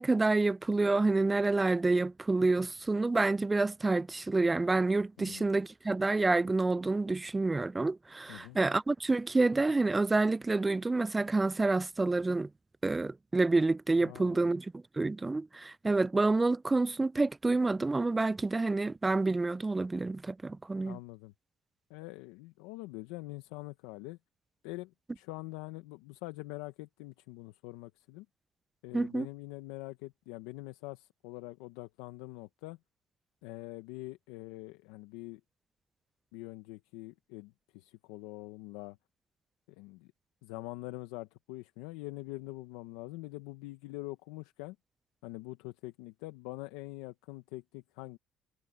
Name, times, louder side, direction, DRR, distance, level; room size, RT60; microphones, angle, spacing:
voice 1, 0.0-12.5 12.8-21.0 28.9-29.3, right 3 dB, 20° right, 0.4 m, -28 dB
voice 2, 5.2-5.5 8.3-8.6 14.0-14.5 20.8-21.3 21.9-24.2 24.6-28.3 28.8-32.8 33.4-35.4 36.3-39.0 39.7-40.1 40.4-44.8 45.2-48.2, left 20 dB, 85° left, 1.0 m, -44 dB
supercardioid pair, 60°, 0 cm